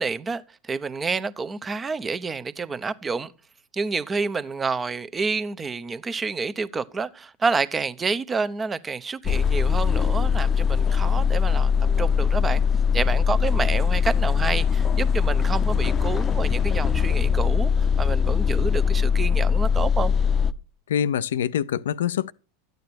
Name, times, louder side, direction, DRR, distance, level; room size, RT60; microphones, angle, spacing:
voice 1, 0.0-3.3 3.7-11.7 12.0-12.6 12.9-20.1, right 4 dB, 20° right, 0.8 m, -28 dB
sound 1, 9.2-20.5, left 6 dB, 30° left, 0.8 m, -21 dB
voice 2, 20.9-22.3, left 9 dB, 70° left, 0.5 m, -25 dB
12.5 x 9.3 x 4.3 m
figure-of-eight pair, 90°, 0 cm